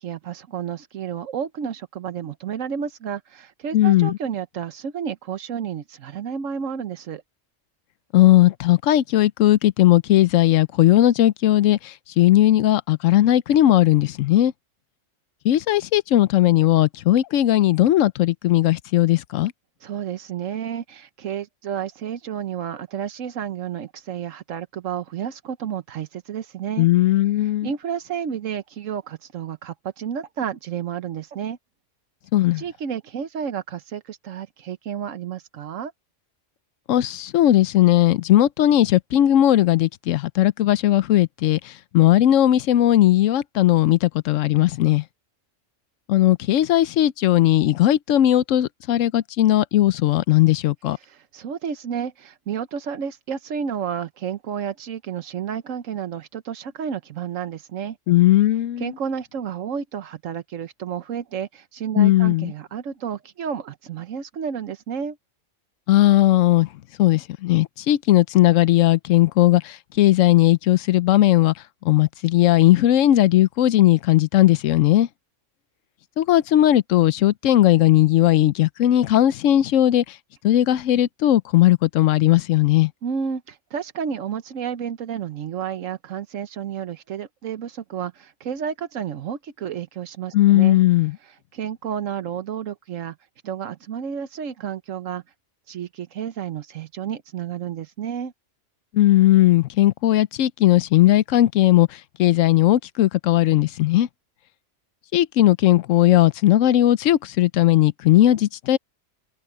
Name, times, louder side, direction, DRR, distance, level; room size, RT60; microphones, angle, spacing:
voice 1, 0.0-7.2 19.8-26.9 27.6-31.6 32.6-35.9 51.0-58.0 58.8-65.2 83.0-90.8 91.5-93.2 93.4-95.2 95.7-98.3, right 8 dB, 85° right, 1.3 m, -31 dB
voice 2, 3.7-4.2 8.1-14.5 15.4-19.5 26.8-27.7 32.3-32.6 36.9-45.0 46.1-51.0 58.1-58.9 62.0-62.5 65.9-66.7 67.0-71.5 71.8-75.1 76.2-80.2 80.4-82.9 90.3-91.2 98.9-104.1 105.1-108.8, left 14 dB, 85° left, 1.0 m, -17 dB
omnidirectional pair, 1.3 m